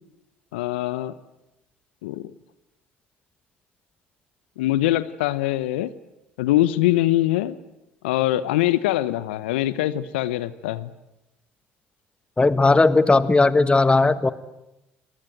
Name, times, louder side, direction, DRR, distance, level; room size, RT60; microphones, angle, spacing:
voice 1, 0.5-1.1 2.0-2.3 4.6-5.9 6.4-7.6 8.0-10.9, left 15 dB, 75° left, 15 dB, 0.9 m, -23 dB
voice 2, 12.4-14.3, left 3 dB, 20° left, 13 dB, 1.7 m, -17 dB
27.5 x 20.5 x 9.2 m, 0.91 s
hypercardioid pair, 60°, 6 cm